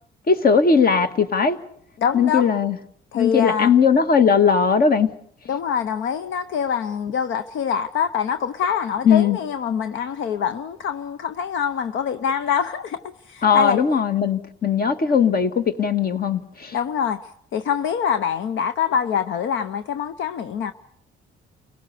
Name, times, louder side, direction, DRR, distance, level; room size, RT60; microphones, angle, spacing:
voice 1, 0.3-1.6 2.1-2.8 3.1-5.1 9.0-9.4 13.4-16.7, left 6 dB, 50° left, 1.7 m, -18 dB
voice 2, 2.0-2.5 3.1-3.7 5.5-13.8 16.7-17.2 17.5-20.7, left 7 dB, 75° left, 0.9 m, -25 dB
29.5 x 17.5 x 6.8 m
cardioid pair, 90°, 20 cm